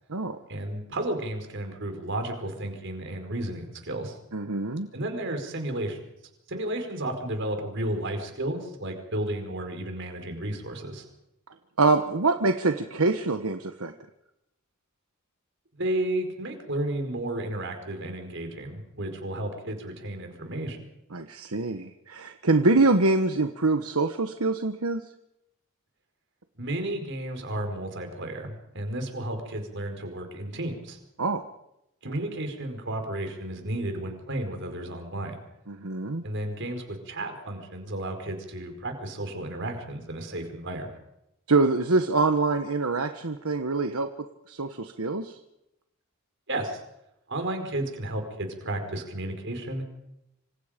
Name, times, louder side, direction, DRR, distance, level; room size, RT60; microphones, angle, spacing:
voice 1, 0.5-4.2 4.9-6.0 6.5-11.1 15.7-20.8 26.5-31.0 32.0-35.4 36.2-40.9 46.5-46.8 47.3-49.8, right 1 dB, 55° right, 5 dB, 4.8 m, -33 dB
voice 2, 4.3-4.9 11.8-13.9 21.1-25.0 31.2-31.4 32.1-32.2 35.7-36.2 41.5-44.1 44.5-45.4, right 3 dB, 80° right, 7 dB, 1.3 m, -25 dB
26.5 x 26.0 x 5.2 m, 0.86 s
head